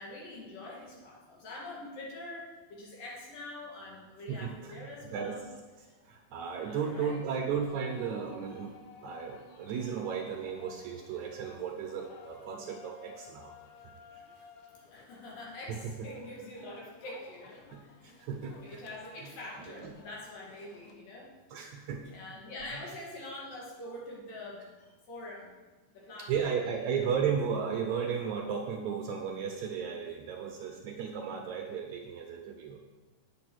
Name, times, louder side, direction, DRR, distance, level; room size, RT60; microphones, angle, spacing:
voice 1, 0.0-5.4 5.8-5.9 6.6-7.2 14.7-21.3 22.1-25.6 25.9-27.0, left 1 dB, 65° left, -4 dB, 3.6 m, -45 dB
voice 2, 4.3-5.4 6.1-13.5 15.8-16.1 17.7-18.6 19.7-19.9 21.5-22.1 22.7-22.8 26.3-32.8, right 7 dB, 80° right, 2 dB, 1.7 m, -35 dB
sound 1, 5.5-21.0, left 5 dB, 80° left, 2.7 m, -55 dB
9.1 x 7.0 x 6.2 m, 1.2 s
omnidirectional pair, 4.4 m